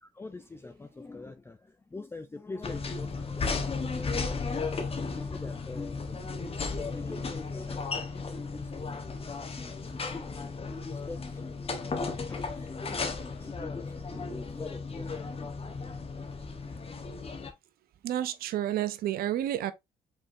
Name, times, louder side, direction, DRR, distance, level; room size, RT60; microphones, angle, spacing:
voice 1, 0.0-3.9 4.3-9.0 9.2-15.5, left 3 dB, 15° left, 0.5 m, -45 dB
sound 1, 2.6-17.5, left 4 dB, 35° left, 1.1 m, -35 dB
voice 2, 18.0-19.7, right 12 dB, 70° right, 0.5 m, -30 dB
5.3 x 3.6 x 2.6 m
supercardioid pair, 70°, 16 cm